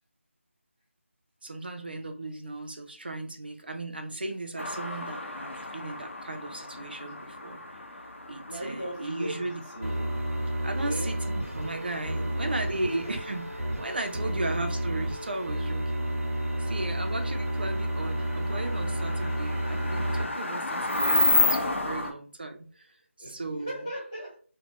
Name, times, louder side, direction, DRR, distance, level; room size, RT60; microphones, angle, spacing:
voice 1, 1.4-7.6 8.3-9.6 10.6-13.4 13.8-16.1 16.6-23.8, right 2 dB, 45° right, 5 dB, 0.4 m, -36 dB
sound 1, 4.6-22.1, left 2 dB, 60° left, 0.7 m, -33 dB
voice 2, 8.4-10.2 10.7-11.1 12.1-12.5 12.8-13.1 14.2-14.3 23.2-24.4, right 1 dB, 15° left, -8 dB, 0.4 m, -38 dB
sound 2, 9.8-20.2, right 1 dB, 85° right, 0.8 m, -31 dB
2.4 x 2.1 x 3.6 m, 0.42 s
figure-of-eight pair, 180°, 7 cm